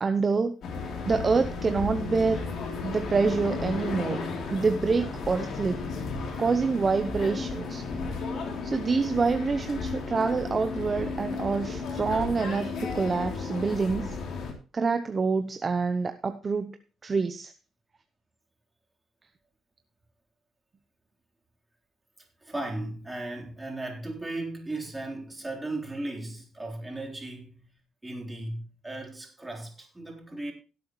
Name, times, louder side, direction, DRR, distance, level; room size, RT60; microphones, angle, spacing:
voice 1, 0.0-0.5 1.1-2.4 2.8-4.2 4.5-5.8 6.4-7.8 8.6-14.2 14.7-16.8 17.0-17.5, right 4 dB, 35° right, 0.8 m, -26 dB
sound 1, 0.6-14.5, left 4 dB, 70° left, 3.3 m, -34 dB
voice 2, 7.2-7.6 22.4-27.7 28.0-30.5, right 2 dB, 15° right, 3.7 m, -36 dB
17.0 x 8.0 x 3.1 m
cardioid pair, 90°, 0 cm